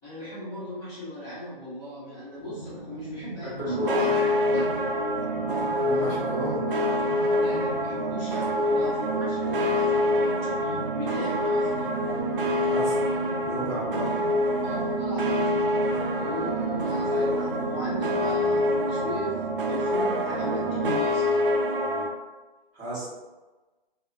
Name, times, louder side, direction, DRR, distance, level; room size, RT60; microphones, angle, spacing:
voice 1, 0.0-3.6 4.0-4.7 7.3-11.9 14.6-15.8 16.2-21.2, left 1 dB, 10° left, -16 dB, 0.9 m, -38 dB
sound 1, 2.4-21.1, right 1 dB, 35° right, 0.8 m, -40 dB
voice 2, 3.4-4.1 5.7-6.6 12.6-13.0 13.4-14.1 17.0-17.3 22.7-23.1, equal, 15° right, -14 dB, 1.0 m, -32 dB
sound 2, 3.7-22.1, equal, 65° right, 0.5 m, -26 dB
3.0 x 2.0 x 2.4 m, 1.2 s
hypercardioid pair, 155°, 29 cm